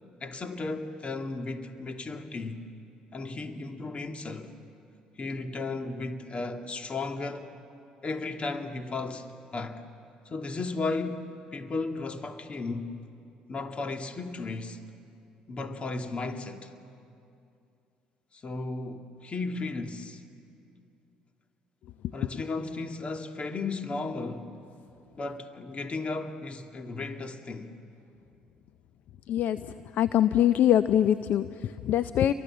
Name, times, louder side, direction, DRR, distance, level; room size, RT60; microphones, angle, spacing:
voice 1, 0.2-2.6 3.1-4.5 5.2-7.5 8.0-9.8 10.3-13.0 13.5-14.8 15.5-16.7 18.3-20.2 22.1-24.6 25.1-27.8, left 3 dB, 40° left, 2.0 m, -35 dB
voice 2, 29.3-29.6 29.9-32.3, left 11 dB, 60° left, 0.5 m, -23 dB
29.5 x 23.5 x 7.5 m
hypercardioid pair, 60°, 3 cm